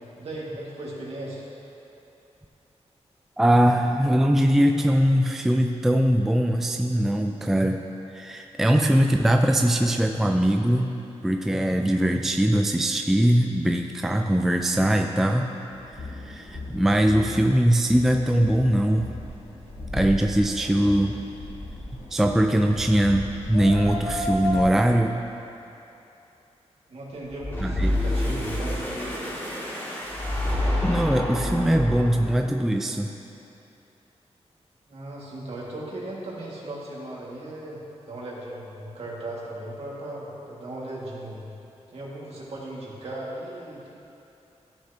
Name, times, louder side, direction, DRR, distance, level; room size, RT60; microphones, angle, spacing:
voice 1, 0.2-1.4 26.9-28.8 31.6-31.7 34.9-37.8 38.1-41.4 41.9-43.9, right 1 dB, 65° right, -5 dB, 2.0 m, -37 dB
voice 2, 3.4-7.8 8.1-11.0 11.2-15.5 15.9-19.1 19.9-21.1 22.1-25.2 27.6-27.9 30.8-33.1, right 1 dB, 5° right, 4 dB, 0.3 m, -21 dB
sound 1, 15.7-24.7, left 2 dB, 80° left, 1.7 m, -34 dB
sound 2, 27.2-32.5, left 1 dB, 20° left, 2.0 m, -28 dB
14.5 x 6.5 x 2.9 m, 2.9 s
wide cardioid pair, 150°, 11 cm